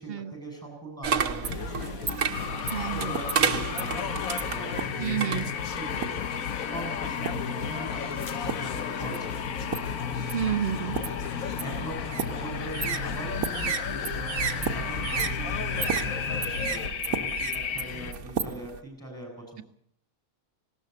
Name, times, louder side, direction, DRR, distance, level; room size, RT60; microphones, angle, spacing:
voice 1, 0.0-1.9 2.9-5.4 5.8-9.7 11.6-19.6, right 1 dB, ahead, 2 dB, 7.1 m, -41 dB
sound 1, 1.0-6.3 7.0-7.5 8.2-8.8 9.1-18.8, right 7 dB, 80° right, 1.6 m, -32 dB
sound 2, 1.4-16.9, left 7 dB, 70° left, 1.5 m, -35 dB
sound 3, 2.3-18.1, left 7 dB, 90° left, 1.5 m, -35 dB
voice 2, 2.7-3.2 5.0-5.5 10.3-11.0, right 10 dB, 45° right, 10 dB, 1.2 m, -30 dB
19.0 x 17.5 x 8.0 m, 0.68 s
omnidirectional pair, 1.5 m